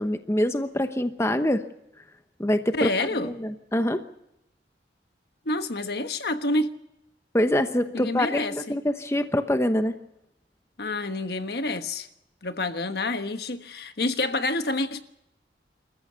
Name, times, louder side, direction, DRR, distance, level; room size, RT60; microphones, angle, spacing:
voice 1, 0.0-1.6 2.4-4.0 7.3-10.0, left 1 dB, 15° left, 0.9 m, -25 dB
voice 2, 2.8-3.3 5.4-6.7 7.9-8.8 10.8-12.1 12.4-15.0, left 2 dB, 65° left, 1.3 m, -28 dB
26.5 x 14.5 x 6.9 m
head